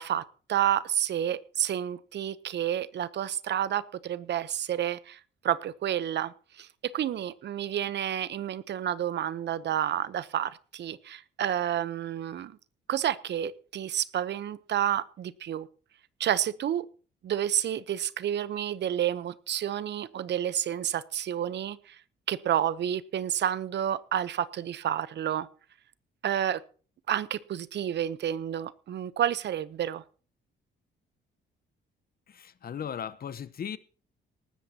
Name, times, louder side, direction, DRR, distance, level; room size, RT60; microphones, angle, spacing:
voice 1, 0.0-12.6 12.9-15.7 16.2-16.9 17.2-22.0 22.3-25.5 26.2-26.6 27.1-30.0, right 10 dB, 60° right, 18 dB, 0.8 m, -30 dB
voice 2, 32.3-33.8, left 8 dB, 50° left, 15 dB, 1.0 m, -37 dB
18.5 x 13.5 x 2.9 m, 0.40 s
cardioid pair, 90°, 20 cm